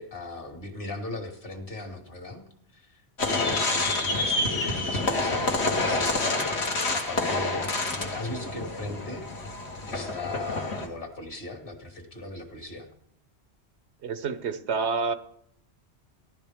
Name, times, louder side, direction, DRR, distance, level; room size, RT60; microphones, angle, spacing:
voice 1, 0.0-2.4 2.7-3.0 3.7-6.5 6.9-9.2 9.9-12.9, left 2 dB, 55° left, 4 dB, 2.1 m, -38 dB
sound 1, 3.2-10.9, left 2 dB, 70° left, 1.7 m, -28 dB
voice 2, 14.0-15.1, right 5 dB, 85° right, 12 dB, 1.1 m, -29 dB
16.5 x 11.5 x 3.6 m, 0.71 s
omnidirectional pair, 1.1 m